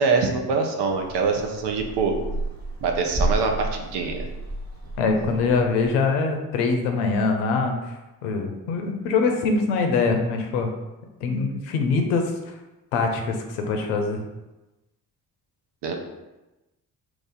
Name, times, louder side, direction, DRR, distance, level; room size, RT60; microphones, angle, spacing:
voice 1, 0.0-2.2 2.8-4.3 15.8-15.9, right 4 dB, 65° right, 3 dB, 0.7 m, -24 dB
sound 1, 0.9-5.9, right 2 dB, 35° right, 1.2 m, -31 dB
voice 2, 5.0-7.8 8.2-10.7 11.2-12.3 12.9-14.2, left 4 dB, 85° left, 4 dB, 0.6 m, -23 dB
3.1 x 2.6 x 3.7 m, 1.0 s
hypercardioid pair, 45°, 44 cm